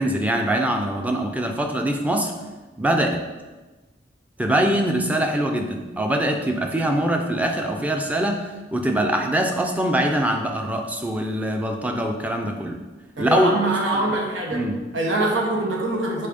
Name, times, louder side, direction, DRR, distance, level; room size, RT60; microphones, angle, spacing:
voice 1, 0.0-2.3 2.8-3.2 4.4-12.8 13.2-14.2 14.5-14.8, right 1 dB, 10° right, 3 dB, 0.5 m, -23 dB
voice 2, 13.2-14.6 14.9-16.3, right 2 dB, 90° right, -1 dB, 1.2 m, -24 dB
5.5 x 4.2 x 5.3 m, 1.2 s
head